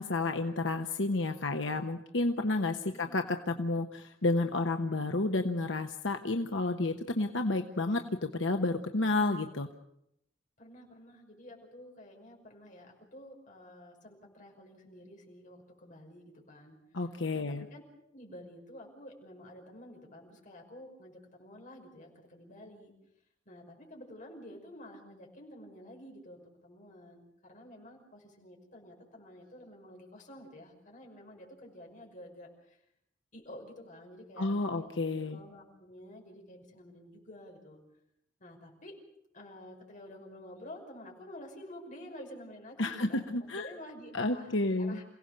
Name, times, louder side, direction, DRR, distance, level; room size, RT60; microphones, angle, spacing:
voice 1, 0.0-9.7 16.9-17.7 34.4-35.4 42.8-43.7 44.1-45.0, left 2 dB, 75° left, 5 dB, 1.1 m, -31 dB
voice 2, 10.6-16.8 17.3-17.8 18.1-22.9 23.5-32.8 33.3-34.9 35.3-37.8 38.4-39.0 39.3-45.0, left 1 dB, 45° left, 0 dB, 5.8 m, -50 dB
28.0 x 17.0 x 6.8 m, 0.79 s
head